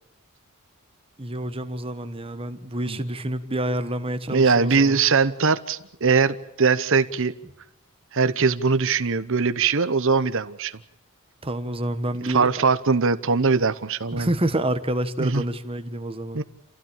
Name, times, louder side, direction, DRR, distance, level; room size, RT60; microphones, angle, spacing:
voice 1, 1.2-5.0 11.4-12.7 14.1-16.4, right 1 dB, 25° right, 1.4 m, -28 dB
voice 2, 4.3-7.3 8.1-10.8 12.3-14.3 15.2-15.4 16.3-16.4, right 4 dB, 60° right, 1.0 m, -21 dB
28.0 x 15.5 x 8.8 m
head